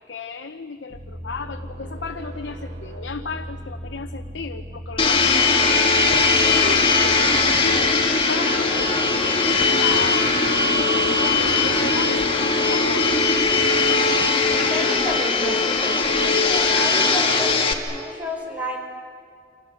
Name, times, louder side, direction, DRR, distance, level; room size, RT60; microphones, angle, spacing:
voice 1, 0.0-5.9 6.4-7.9 8.3-8.7 9.7-10.3 11.3-13.2, left 4 dB, 85° left, 5 dB, 0.9 m, -33 dB
sound 1, 0.9-8.3, equal, 40° right, 1.6 m, -37 dB
Domestic sounds home sounds, 5.0-17.7, left 4 dB, 30° left, 1.9 m, -19 dB
sound 2, 6.1-14.8, equal, 60° right, 4.0 m, -35 dB
voice 2, 14.5-18.8, equal, 10° right, 1 dB, 4.9 m, -31 dB
29.0 x 26.0 x 6.4 m, 2.2 s
head